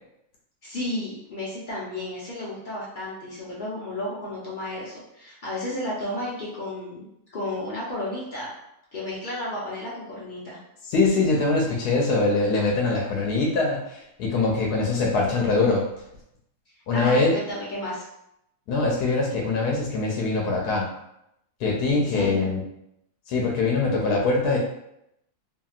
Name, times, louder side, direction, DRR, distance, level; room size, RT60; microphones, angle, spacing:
voice 1, 0.6-8.5 8.9-10.6 16.9-18.1 21.9-22.5, left 1 dB, 55° left, -6 dB, 0.5 m, -32 dB
voice 2, 10.9-15.9 16.9-17.3 18.7-20.9 21.6-22.6 23.3-24.6, left 3 dB, 80° left, -1 dB, 1.1 m, -23 dB
2.8 x 2.7 x 2.4 m, 0.80 s
omnidirectional pair, 1.7 m